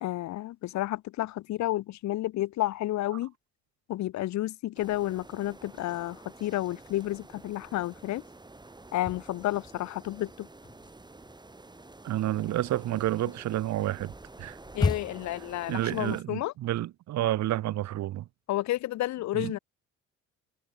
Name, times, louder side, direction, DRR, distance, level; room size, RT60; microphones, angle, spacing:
voice 1, 0.0-3.3 3.9-8.2 8.9-10.5 14.7-16.5 18.5-19.6, left 15 dB, 65° left, 1.0 m, -31 dB
sound 1, 4.7-16.2, right 2 dB, 15° right, 3.1 m, -49 dB
sound 2, 8.8-10.0 10.3-15.4, left 4 dB, 15° left, 0.6 m, -35 dB
voice 2, 12.0-14.6 15.7-18.3 19.3-19.5, right 14 dB, 65° right, 1.4 m, -30 dB
supercardioid pair, 75°, 30 cm